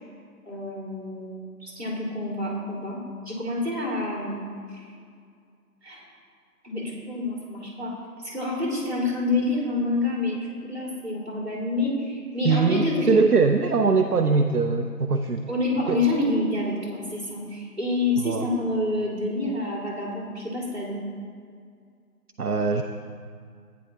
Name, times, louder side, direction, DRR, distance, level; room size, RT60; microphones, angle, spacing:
voice 1, 0.4-3.0 3.2-4.9 5.8-6.1 6.6-8.0 8.2-13.2 15.5-21.0, left 2 dB, 40° right, -3 dB, 2.4 m, -28 dB
voice 2, 12.4-15.4 15.9-16.0 18.2-18.5 22.4-22.8, right 4 dB, 70° right, 6 dB, 0.6 m, -22 dB
14.5 x 9.4 x 2.8 m, 2.2 s
figure-of-eight pair, 175°, 47 cm